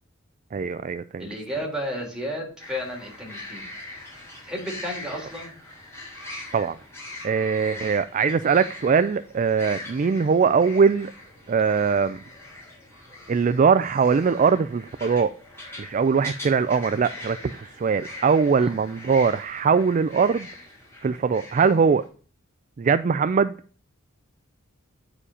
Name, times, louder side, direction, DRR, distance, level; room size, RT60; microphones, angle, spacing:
voice 1, 0.5-1.3 6.5-6.8 7.2-11.1 11.5-12.2 13.3-15.3 15.8-20.5 21.0-22.0 22.8-23.5, right 5 dB, 40° right, 0.3 m, -21 dB
voice 2, 1.2-3.7 4.4-5.5 18.6-18.7, equal, 5° right, 3.8 m, -32 dB
sound 1, 2.6-22.0, left 2 dB, 10° left, 4.8 m, -42 dB
9.8 x 5.0 x 5.0 m
head